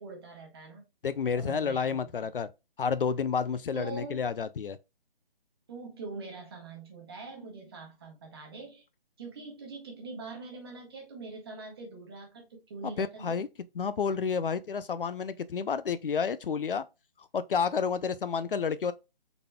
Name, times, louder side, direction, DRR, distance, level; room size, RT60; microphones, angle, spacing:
voice 1, 0.0-0.9 1.4-2.3 3.7-4.3 5.7-8.8 9.2-13.4, right 3 dB, 25° right, 1.2 m, -43 dB
voice 2, 1.0-2.5 2.8-4.8 12.8-13.5 13.7-16.8 17.3-18.9, left 6 dB, 65° left, 0.5 m, -30 dB
5.2 x 4.0 x 2.2 m
hypercardioid pair, 165°, 30 cm